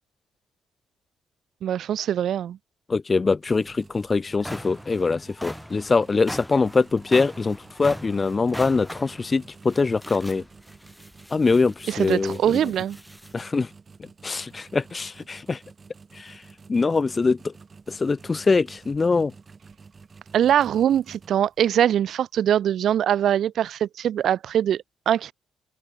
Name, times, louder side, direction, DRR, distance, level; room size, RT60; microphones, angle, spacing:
voice 1, 1.6-2.6 11.9-13.0 20.3-25.3, right 10 dB, 65° right, 0.6 m, -22 dB
voice 2, 2.9-10.4 11.3-12.7 13.3-13.7 14.0-15.6 16.1-16.4 16.7-17.5 17.9-19.3, left 4 dB, 30° left, 0.4 m, -23 dB
sound 1, 3.4-21.8, right 4 dB, 35° right, 4.5 m, -50 dB
sound 2, 3.7-3.8 4.2-13.4, equal, ahead, 1.0 m, -41 dB
cardioid pair, 90°, 0 cm